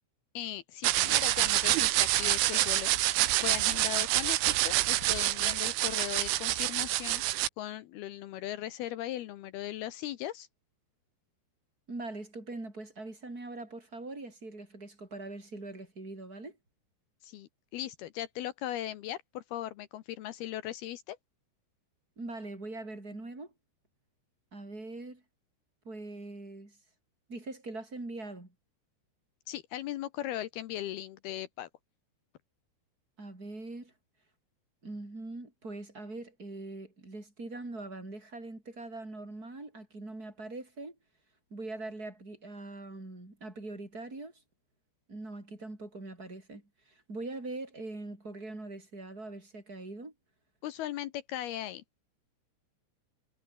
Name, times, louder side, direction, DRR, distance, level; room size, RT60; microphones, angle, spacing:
voice 1, 0.3-7.2 7.6-10.5 17.2-21.2 29.5-31.7 50.6-51.8, left 13 dB, 75° left, 2.4 m, -38 dB
sound 1, 0.8-7.5, right 16 dB, 80° right, 3.5 m, -27 dB
voice 2, 11.9-16.6 22.2-23.5 24.5-25.2 25.8-26.8 27.3-28.5 33.2-33.9 34.8-41.0 41.5-44.3 45.1-50.1, right 2 dB, 15° right, 7.4 m, -42 dB
omnidirectional pair, 5.6 m